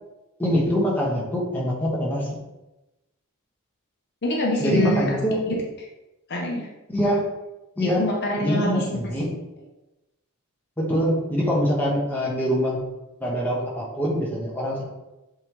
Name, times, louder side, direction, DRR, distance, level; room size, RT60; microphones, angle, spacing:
voice 1, 0.4-2.4 4.6-5.5 6.9-7.3 7.8-8.0 8.4-9.3 10.8-12.8 13.2-14.8, equal, 10° left, -5 dB, 1.5 m, -24 dB
voice 2, 4.2-5.1 6.3-6.7 8.0-8.8, equal, 50° left, -1 dB, 0.9 m, -25 dB
7.9 x 3.8 x 3.3 m, 0.99 s
head